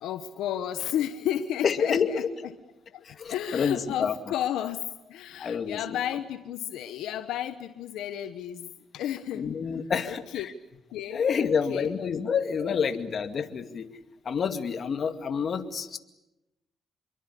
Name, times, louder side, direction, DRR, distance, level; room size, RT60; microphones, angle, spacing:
voice 1, 0.0-2.2 2.9-9.4 10.0-10.5 10.9-11.9 12.7-12.8, left 10 dB, 85° left, 9 dB, 1.2 m, -33 dB
voice 2, 1.6-2.5 3.0-4.2 5.4-6.0 9.3-10.5 11.1-13.9 14.2-16.0, left 6 dB, 50° left, 7 dB, 2.3 m, -28 dB
27.0 x 23.0 x 8.5 m, 0.95 s
cardioid pair, 90°, 0 cm